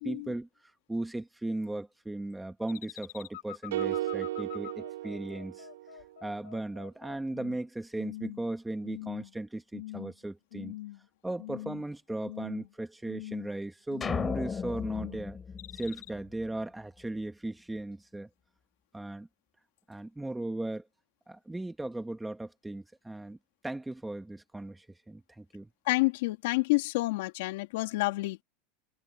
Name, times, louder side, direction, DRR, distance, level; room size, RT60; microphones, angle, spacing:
voice 1, 0.0-5.7 6.2-10.8 11.2-15.4 15.7-18.3 18.9-19.3 19.9-20.9 21.3-23.4 23.6-25.7, right 2 dB, 5° right, 1.8 m, -37 dB
sound 1, 2.7-7.6 8.0-8.5 8.8-9.3 9.7-10.1 10.5-11.1 11.4-11.9 12.2-12.7 13.0-13.5 13.9-14.4 14.8-15.2 15.6-16.1, left 16 dB, 90° left, 3.1 m, -44 dB
sound 2, 3.7-6.0, right 15 dB, 90° right, 5.3 m, -35 dB
sound 3, 14.0-16.5, left 6 dB, 15° left, 5.6 m, -36 dB
voice 2, 25.9-28.4, left 22 dB, 70° left, 3.1 m, -29 dB
supercardioid pair, 150°, 0 cm